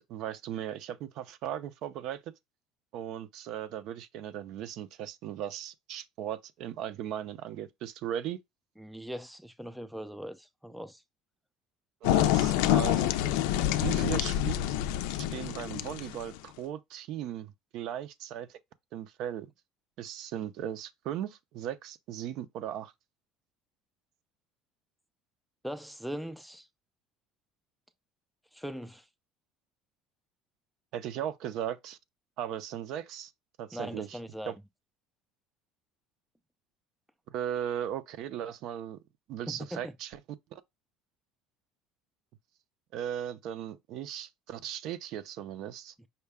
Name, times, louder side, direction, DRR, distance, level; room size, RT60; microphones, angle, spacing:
voice 1, 0.0-2.2 2.9-8.4 12.0-13.1 13.8-14.5 15.3-18.6 18.9-19.5 20.0-22.9 30.9-32.0 32.4-33.3 33.6-34.2 34.5-34.6 37.3-39.0 39.3-40.2 40.5-40.6 42.9-45.9, right 10 dB, 60° right, 0.5 m, -37 dB
voice 2, 8.8-11.0 25.6-26.7 28.5-29.1 33.7-34.5 39.5-39.9, equal, ahead, 0.4 m, -40 dB
sound 1, 12.0-16.4, left 12 dB, 90° left, 0.4 m, -27 dB
5.5 x 2.2 x 3.5 m
cardioid pair, 145°, 0 cm